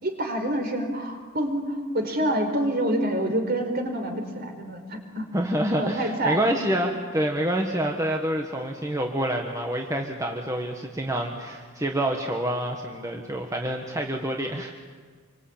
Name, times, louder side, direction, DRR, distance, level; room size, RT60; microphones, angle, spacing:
voice 1, 0.0-5.3 5.8-6.5, right 1 dB, 50° right, 5 dB, 4.5 m, -27 dB
voice 2, 5.3-14.7, right 1 dB, 15° right, 2 dB, 1.6 m, -27 dB
27.0 x 24.5 x 8.8 m, 1.5 s
head